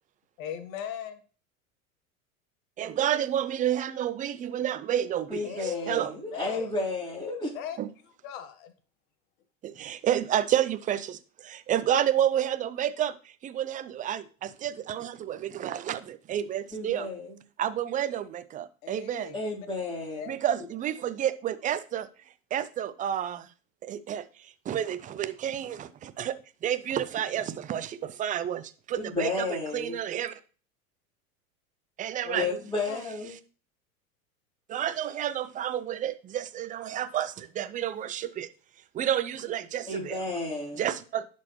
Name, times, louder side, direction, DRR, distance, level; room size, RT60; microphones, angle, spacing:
voice 1, 0.4-1.2 5.4-6.0 6.3-6.8 7.5-7.8 8.2-8.7 18.8-19.7 20.1-20.7 32.2-33.0, left 8 dB, 65° left, 1.3 m, -39 dB
voice 2, 2.8-6.1 7.8-7.9 9.6-17.1 17.6-19.3 20.3-22.1 22.5-23.5 23.8-26.4 26.6-30.3 32.0-32.5 34.7-38.5 38.9-40.2 40.8-41.3, right 10 dB, 20° right, 0.4 m, -30 dB
voice 3, 5.3-7.5 16.7-17.4 19.3-20.3 29.0-30.0 32.3-33.3 39.9-40.8, left 2 dB, 10° left, 3.6 m, -32 dB
11.0 x 4.3 x 3.0 m
hypercardioid pair, 95°, 43 cm